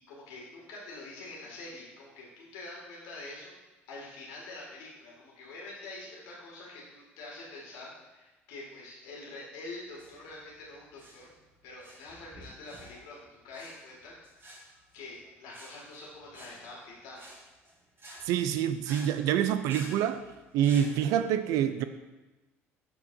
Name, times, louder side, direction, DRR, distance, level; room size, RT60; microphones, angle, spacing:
voice 1, 0.1-3.5 3.9-11.3 11.6-14.2 14.9-17.2, left 2 dB, 60° left, -4 dB, 2.3 m, -45 dB
sound 1, 9.9-20.9, right 1 dB, 30° right, 1.6 m, -50 dB
voice 2, 18.2-20.2 20.5-21.8, right 10 dB, 55° right, 11 dB, 0.4 m, -26 dB
11.5 x 4.5 x 2.7 m, 1.1 s
figure-of-eight pair, 60°, 7 cm